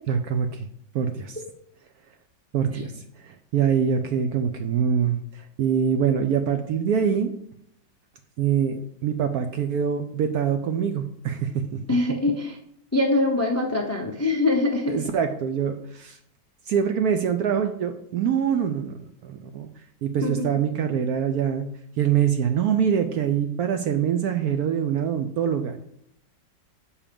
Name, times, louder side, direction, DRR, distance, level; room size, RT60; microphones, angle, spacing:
voice 1, 0.1-0.7 0.9-1.4 2.5-7.3 8.4-11.8 14.9-16.2 16.7-18.9 19.2-19.7 20.0-21.7 22.0-25.8, right 7 dB, 70° right, 7 dB, 0.9 m, -24 dB
voice 2, 11.9-12.6 12.9-15.0 20.2-20.6, left 2 dB, 20° left, 1 dB, 0.4 m, -23 dB
7.1 x 4.8 x 5.1 m, 0.71 s
omnidirectional pair, 1.9 m